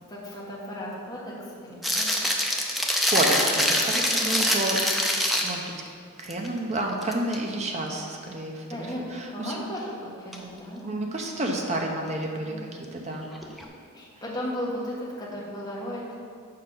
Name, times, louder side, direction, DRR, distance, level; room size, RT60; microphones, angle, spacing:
voice 1, 0.1-2.2 4.1-4.4 5.5-5.6 8.7-10.8 12.4-12.7 13.4-13.5 13.9-16.2, equal, 15° left, -6 dB, 1.5 m, -36 dB
sound 1, 1.8-5.7 6.2-6.5 6.9-7.4 10.3-10.4 13.4-13.6, equal, ahead, 0.5 m, -24 dB
voice 2, 2.8-4.8 5.4-5.6 6.2-9.6 10.8-12.5 12.9-13.3, right 1 dB, 30° right, 1 dB, 0.8 m, -30 dB
6.7 x 5.3 x 5.5 m, 2.2 s
head